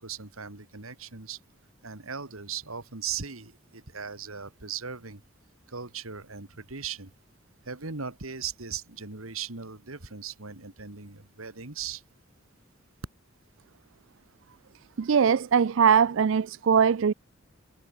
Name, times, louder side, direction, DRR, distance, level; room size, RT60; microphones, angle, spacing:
voice 1, 0.0-1.4 1.8-5.2 5.7-7.1 7.7-12.0, right 6 dB, 85° right, 2.5 m, -38 dB
voice 2, 15.0-17.1, right 7 dB, 65° right, 0.4 m, -21 dB
head